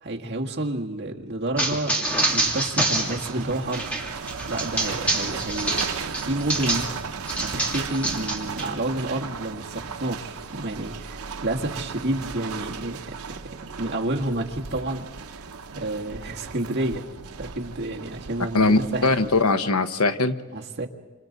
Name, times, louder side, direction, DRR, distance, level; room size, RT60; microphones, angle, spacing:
voice 1, 0.0-3.9 4.5-6.9 7.4-13.4 13.8-15.0 15.7-17.1 17.4-19.1 20.5-20.9, right 1 dB, 50° right, 0 dB, 1.7 m, -30 dB
sound 1, 1.6-6.9 7.3-8.7, right 2 dB, 5° left, 2.6 m, -26 dB
sound 2, 2.0-19.4, right 5 dB, 90° right, 0.9 m, -36 dB
voice 2, 18.5-20.3, left 3 dB, 90° left, 9 dB, 1.0 m, -21 dB
29.0 x 26.5 x 4.0 m, 1.3 s
head